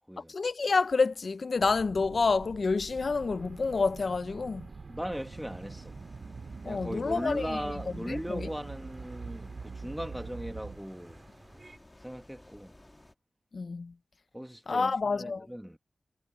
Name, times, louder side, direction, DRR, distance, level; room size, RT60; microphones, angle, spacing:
voice 1, 0.3-4.7 6.7-7.6 8.1-8.5 13.5-13.9 14.7-15.5, left 4 dB, 60° left, 0.4 m, -28 dB
sound 1, 1.6-10.8, right 4 dB, 60° right, 0.4 m, -44 dB
sound 2, 3.1-11.8, right 3 dB, 40° right, 2.4 m, -57 dB
voice 2, 4.9-6.0 6.6-11.2 12.0-12.7 14.3-15.8, equal, 5° right, 1.1 m, -38 dB
sound 3, 5.1-13.1, left 1 dB, 20° left, 1.3 m, -56 dB
wide cardioid pair, 110°, 0 cm